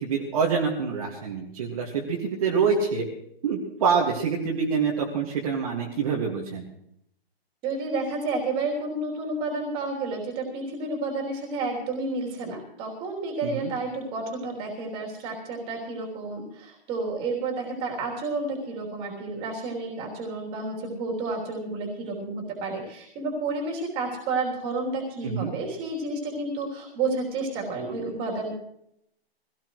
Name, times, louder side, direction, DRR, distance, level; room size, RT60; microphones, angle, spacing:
voice 1, 0.0-3.1 3.4-6.7 13.4-13.7 25.2-25.5, right 5 dB, 35° right, -3 dB, 2.1 m, -26 dB
voice 2, 7.6-28.5, right 3 dB, 15° right, -1 dB, 3.3 m, -31 dB
24.5 x 17.0 x 3.2 m, 0.74 s
hypercardioid pair, 165°, 32 cm